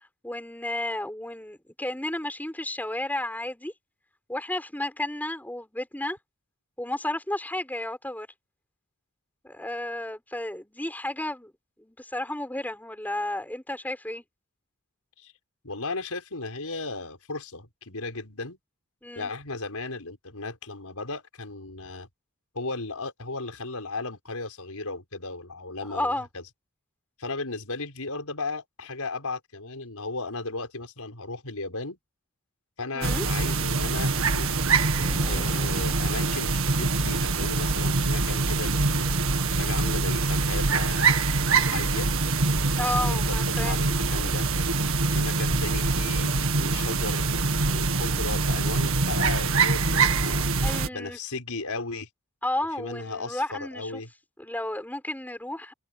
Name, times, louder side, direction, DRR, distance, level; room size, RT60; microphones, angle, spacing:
voice 1, 0.2-3.7 4.3-6.2 6.8-8.3 9.4-11.5 11.8-14.2 19.0-19.3 25.9-26.3 32.9-33.3 42.5-44.3 50.6-51.2 52.4-54.0 54.4-55.7, left 1 dB, 10° left, 5.4 m, -32 dB
voice 2, 15.6-18.6 19.2-22.1 22.5-26.4 27.2-32.0 32.8-34.6 35.3-39.1 39.5-41.3 41.6-42.1 43.1-44.5 45.1-50.5 50.9-52.1 52.8-54.1, left 3 dB, 80° left, 5.3 m, -35 dB
sound 1, 33.0-50.9, right 3 dB, 65° right, 1.9 m, -24 dB
Thunder / Rain, 34.9-42.8 43.1-43.2 43.5-44.8, left 1 dB, 25° left, 4.9 m, -47 dB
head